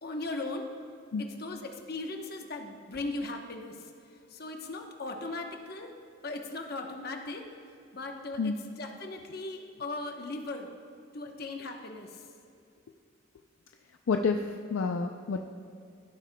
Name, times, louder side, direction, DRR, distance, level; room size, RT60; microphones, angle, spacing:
voice 1, 0.0-0.7 1.2-3.7 4.3-5.9 6.2-7.4 7.9-10.7 11.1-12.1, left 2 dB, 50° left, 3 dB, 0.9 m, -38 dB
voice 2, 14.1-15.4, left 4 dB, 85° left, 4 dB, 0.4 m, -29 dB
16.0 x 8.5 x 2.2 m, 2.5 s
head